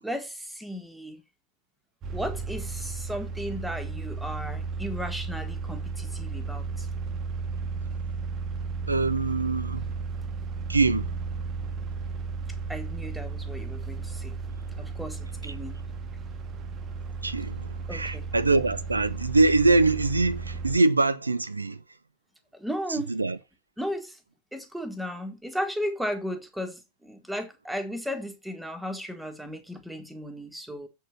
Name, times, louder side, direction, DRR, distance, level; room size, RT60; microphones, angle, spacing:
voice 1, 0.0-1.2 2.1-6.9 12.7-14.4 14.8-15.8 17.9-18.3 22.5-23.1 23.8-24.2 24.5-30.9, equal, 5° right, 1.6 m, -35 dB
sound 1, 2.0-20.8, right 4 dB, 30° right, 1.2 m, -34 dB
voice 2, 8.9-9.9 10.7-11.1 17.2-21.8 23.1-23.4, right 3 dB, 80° right, 0.5 m, -23 dB
7.6 x 4.6 x 6.4 m
figure-of-eight pair, 90°, 0 cm